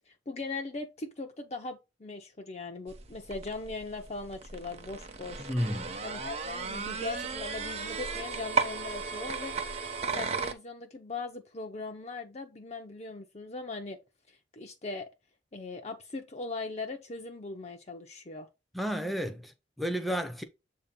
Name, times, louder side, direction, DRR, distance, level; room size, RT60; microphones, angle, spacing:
voice 1, 0.1-5.5 6.0-9.6 10.0-14.0 14.3-15.1 15.5-18.5, left 3 dB, 35° left, 0.7 m, -40 dB
sound 1, 2.9-10.5, right 4 dB, 35° right, 0.9 m, -35 dB
voice 2, 5.4-6.0 18.7-20.4, equal, ahead, 0.6 m, -32 dB
7.6 x 2.9 x 5.2 m
head